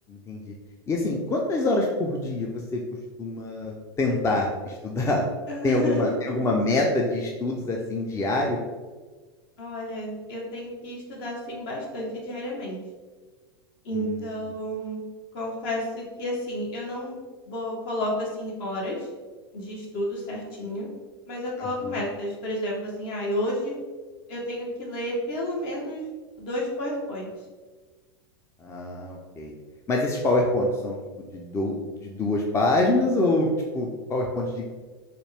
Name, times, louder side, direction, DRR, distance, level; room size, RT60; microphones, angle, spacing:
voice 1, 0.1-0.5 0.9-2.8 3.2-5.3 5.6-8.6 13.9-14.2 21.6-22.0 28.6-29.5 29.9-34.7, left 2 dB, 20° left, 0 dB, 0.5 m, -25 dB
voice 2, 5.5-6.1 9.6-12.8 13.8-15.0 15.3-17.2 17.5-19.1 19.5-20.9 21.3-23.7 24.3-26.0 26.4-27.3, equal, 60° left, -2 dB, 1.4 m, -31 dB
4.1 x 2.4 x 3.4 m, 1.4 s
hypercardioid pair, 95°, 13 cm